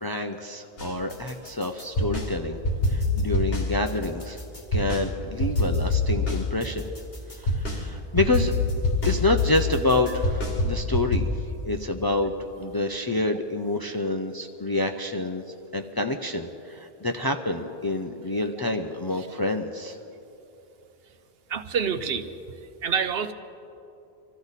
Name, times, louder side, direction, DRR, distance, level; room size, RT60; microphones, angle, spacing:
voice 1, 0.0-2.6 2.9-4.4 4.7-6.9 7.4-8.5 9.0-11.3 11.6-15.4 15.7-20.0, left 2 dB, 30° left, 5 dB, 0.4 m, -27 dB
sound 1, 0.8-2.3 2.6-5.1 5.4-11.2, left 2 dB, 70° left, 2.3 m, -26 dB
voice 2, 21.5-22.3 22.8-23.3, right 7 dB, 75° right, 9 dB, 1.0 m, -27 dB
25.0 x 14.0 x 4.1 m, 2.9 s
omnidirectional pair, 1.0 m